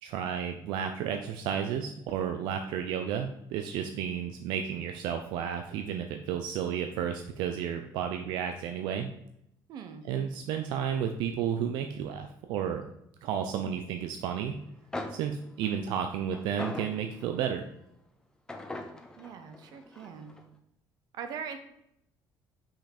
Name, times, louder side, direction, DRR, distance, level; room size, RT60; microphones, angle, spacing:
voice 1, 0.0-9.1 10.1-12.8 13.2-14.6 15.1-17.6, right 8 dB, 80° right, 5 dB, 0.6 m, -32 dB
voice 2, 9.7-10.0 19.2-20.3 21.1-21.6, right 7 dB, 60° right, 8 dB, 0.9 m, -41 dB
sound 1, 14.6-14.7 14.9-17.5 18.5-20.4, left 2 dB, 10° left, 0.8 m, -41 dB
5.8 x 5.7 x 4.3 m, 0.78 s
cardioid pair, 135°, 8 cm